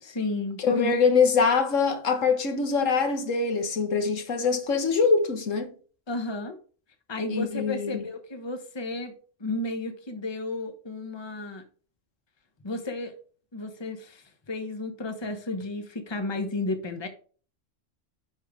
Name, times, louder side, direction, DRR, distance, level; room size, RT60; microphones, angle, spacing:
voice 1, 0.0-0.9 6.1-6.6 7.1-9.1 9.4-11.6 12.6-13.1 13.5-17.1, left 2 dB, 25° left, 1.0 m, -32 dB
voice 2, 0.6-5.7 7.3-8.0, left 5 dB, 85° left, 1.6 m, -24 dB
10.0 x 4.7 x 3.7 m
omnidirectional pair, 1.3 m